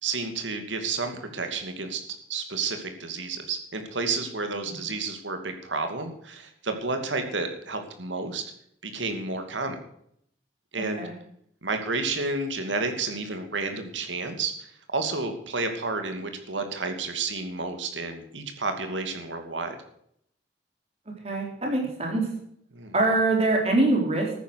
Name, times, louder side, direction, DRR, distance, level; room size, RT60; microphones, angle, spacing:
voice 1, 0.0-2.0 2.3-8.4 8.8-9.8 10.7-11.0 11.6-14.5 14.9-19.8 22.7-22.9, right 3 dB, 85° right, 6 dB, 2.5 m, -31 dB
voice 2, 10.8-11.2 21.2-22.3 22.9-24.3, right 2 dB, 35° right, 0 dB, 4.3 m, -24 dB
13.5 x 10.0 x 6.5 m, 0.69 s
head